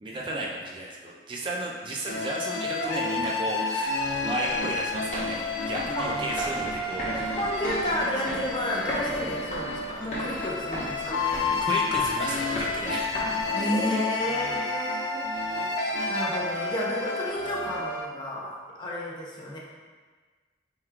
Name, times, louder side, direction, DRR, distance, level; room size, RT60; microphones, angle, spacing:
voice 1, 0.0-7.6 7.9-8.1 11.6-13.3, right 1 dB, 30° right, -2 dB, 0.3 m, -34 dB
sound 1, 2.1-18.1, left 3 dB, 80° left, 0.4 m, -30 dB
sound 2, 3.9-13.9, equal, 45° left, 1.0 m, -37 dB
voice 2, 7.4-11.2 13.5-15.3 16.1-19.6, equal, 25° left, -3 dB, 0.6 m, -31 dB
3.6 x 2.2 x 4.4 m, 1.4 s
head